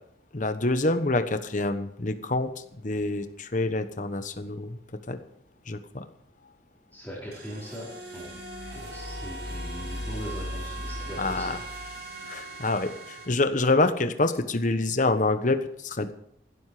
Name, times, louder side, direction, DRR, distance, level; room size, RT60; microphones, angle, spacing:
voice 1, 0.3-2.5 2.8-4.8 5.1-5.2 5.7-6.0 11.2-11.6 12.3-16.1, left 2 dB, 45° left, 10 dB, 1.2 m, -26 dB
voice 2, 6.9-7.8 8.1-8.3 8.6-11.5, equal, 10° left, -9 dB, 5.0 m, -40 dB
sound 1, 7.3-13.3, right 2 dB, 65° right, 6.6 m, -41 dB
Dark Pulsing drone, 8.3-12.0, left 1 dB, 30° left, 0.9 m, -38 dB
16.0 x 12.5 x 5.0 m, 0.69 s
head